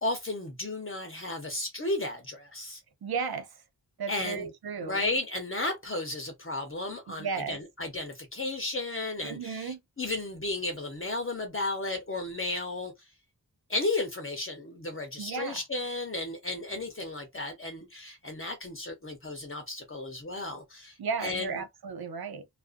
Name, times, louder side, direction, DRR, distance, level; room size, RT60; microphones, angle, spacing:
voice 1, 0.0-2.8 4.1-4.5 4.8-13.1 13.7-21.6, left 2 dB, 35° left, 0.8 m, -34 dB
voice 2, 3.0-3.6 4.0-5.1 7.1-7.6 9.2-9.8 15.2-15.6 21.0-22.5, right 5 dB, 75° right, 0.6 m, -34 dB
2.4 x 2.4 x 2.5 m
wide cardioid pair, 60°, 38 cm